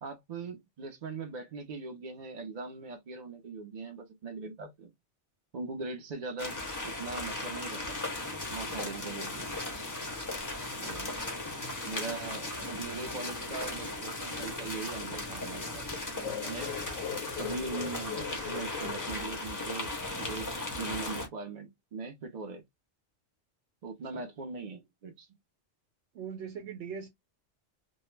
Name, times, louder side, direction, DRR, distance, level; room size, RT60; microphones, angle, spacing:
voice 1, 0.0-4.9 5.5-6.6 6.8-8.0 8.5-9.5 10.8-11.2 11.8-15.8 16.1-16.7 17.3-19.9 20.2-22.6 23.8-25.3, right 4 dB, 50° right, 0.5 m, -40 dB
sound 1, 6.4-21.3, left 2 dB, 25° left, 0.4 m, -37 dB
sound 2, 16.2-19.9, left 10 dB, 85° left, 0.9 m, -40 dB
voice 2, 26.1-27.1, right 7 dB, 75° right, 0.9 m, -40 dB
2.2 x 2.1 x 3.0 m
omnidirectional pair, 1.2 m